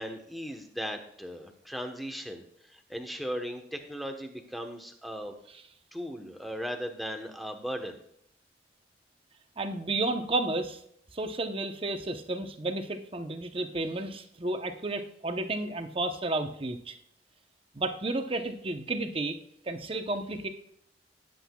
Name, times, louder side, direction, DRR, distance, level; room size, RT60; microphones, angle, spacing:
voice 1, 0.0-2.4 2.7-5.4 5.9-8.0, equal, ahead, 4 dB, 1.1 m, -37 dB
voice 2, 9.6-10.8 11.1-16.9 17.7-19.4 19.6-20.5, right 2 dB, 30° right, 7 dB, 0.9 m, -32 dB
18.5 x 7.8 x 2.3 m, 0.70 s
head